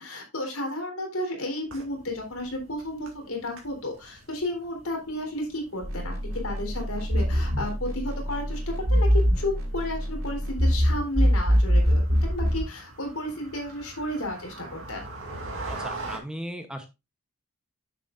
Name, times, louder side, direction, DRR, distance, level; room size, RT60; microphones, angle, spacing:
voice 1, 0.0-6.1 6.4-15.0, left 1 dB, 75° left, 2 dB, 3.7 m, -32 dB
sound 1, 1.6-16.2, right 2 dB, 65° right, 2.3 m, -44 dB
sound 2, 5.8-12.7, equal, 80° right, 4.6 m, -24 dB
voice 2, 15.7-16.9, equal, 5° right, 6 dB, 0.8 m, -37 dB
9.6 x 7.4 x 2.5 m, 0.25 s
head